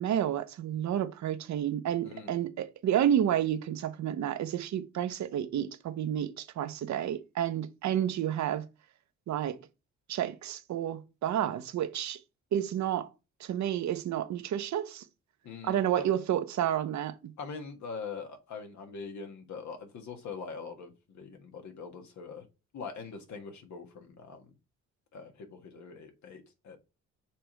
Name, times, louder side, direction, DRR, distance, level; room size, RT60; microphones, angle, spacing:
voice 1, 0.0-8.7 9.3-9.6 10.1-12.2 12.5-13.1 13.4-15.1 15.6-17.3, right 10 dB, 65° right, 0.9 m, -30 dB
voice 2, 2.0-2.3 15.4-16.1 17.4-22.4 22.7-24.5 25.1-26.8, left 5 dB, 70° left, 1.7 m, -43 dB
6.7 x 3.4 x 4.5 m
cardioid pair, 90°, 30 cm